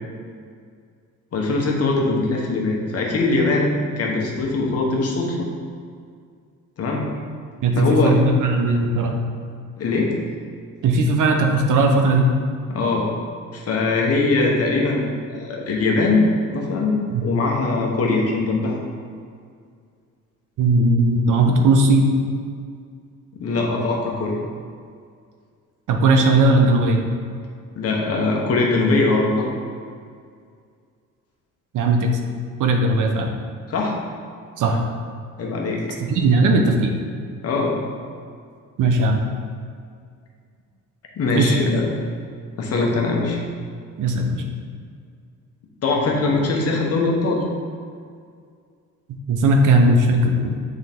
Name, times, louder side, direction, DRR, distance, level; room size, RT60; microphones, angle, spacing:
voice 1, 1.3-5.4 6.8-7.1 7.8-8.2 9.8-10.2 12.7-13.1 13.5-16.2 16.5-17.0 17.2-18.8 23.3-24.4 27.7-29.5 33.7-34.0 35.4-36.0 37.4-37.7 41.2-41.9 42.6-43.4 45.8-47.4, left 3 dB, 45° left, -1 dB, 1.1 m, -21 dB
voice 2, 7.6-9.2 10.8-12.3 17.1-17.2 20.6-22.1 25.9-27.0 31.7-32.1 32.6-33.3 34.6-34.8 36.1-36.9 38.8-39.2 41.3-41.5 44.0-44.5 49.3-50.6, right 2 dB, 60° right, 3 dB, 0.8 m, -17 dB
8.1 x 3.9 x 3.5 m, 2.2 s
cardioid pair, 145°, 35 cm